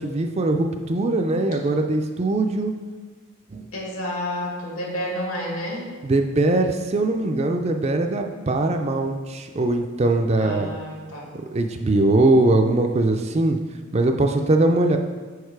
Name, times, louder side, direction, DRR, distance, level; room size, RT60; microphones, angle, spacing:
voice 1, 0.0-2.7 3.5-3.6 6.0-10.7 11.5-13.6 13.9-15.0, right 2 dB, 30° right, 4 dB, 0.4 m, -21 dB
voice 2, 3.7-5.9 10.4-11.3, left 1 dB, 75° left, -2 dB, 1.9 m, -30 dB
6.5 x 5.2 x 4.6 m, 1.4 s
head